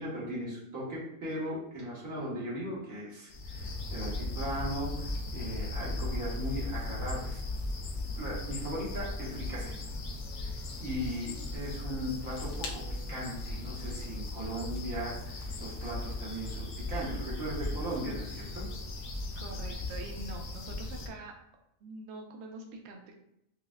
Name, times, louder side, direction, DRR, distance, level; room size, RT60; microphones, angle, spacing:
voice 1, 0.0-7.4 8.2-9.7 10.4-12.8 13.1-18.6, right 1 dB, 85° right, -7 dB, 1.8 m, -38 dB
sound 1, 3.3-21.1, left 2 dB, 65° left, 0.9 m, -37 dB
voice 2, 19.4-21.3 21.8-23.2, right 2 dB, 65° right, 2 dB, 0.7 m, -45 dB
5.6 x 2.1 x 2.3 m, 0.81 s
omnidirectional pair, 1.4 m